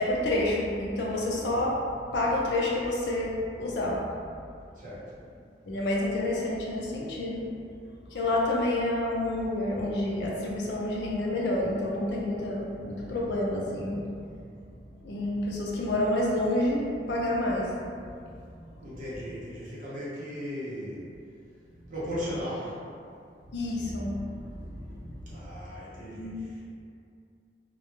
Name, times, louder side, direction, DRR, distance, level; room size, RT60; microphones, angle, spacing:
voice 1, 0.0-1.8 2.1-4.1 5.7-7.5 8.1-14.1 15.0-17.9 18.1-18.2 18.5-18.6 23.5-25.4 26.0-26.5, left 1 dB, 75° left, -3 dB, 0.5 m, -29 dB
voice 2, 4.7-5.1 18.8-21.1 21.9-22.8 25.3-26.6, equal, 50° right, -9 dB, 0.7 m, -37 dB
2.2 x 2.1 x 3.0 m, 2.4 s
head